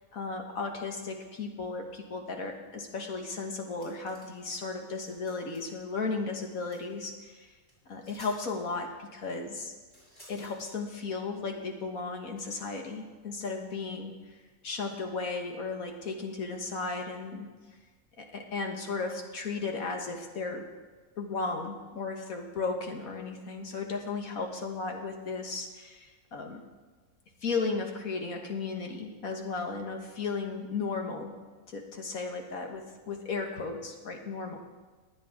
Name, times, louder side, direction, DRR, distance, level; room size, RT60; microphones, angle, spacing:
voice 1, 0.1-7.5 7.9-9.7 10.3-14.4 14.6-17.5 18.2-20.7 21.2-26.6 27.4-31.3 31.7-34.6, left 4 dB, 80° left, 3 dB, 1.9 m, -35 dB
sound 1, 3.7-4.5 4.8-5.7 6.7-6.8 7.7-7.8 8.0-8.4 9.9-10.8 12.4-12.5, equal, 20° left, 5.2 m, -55 dB
22.0 x 8.5 x 3.7 m, 1.4 s
omnidirectional pair, 1.5 m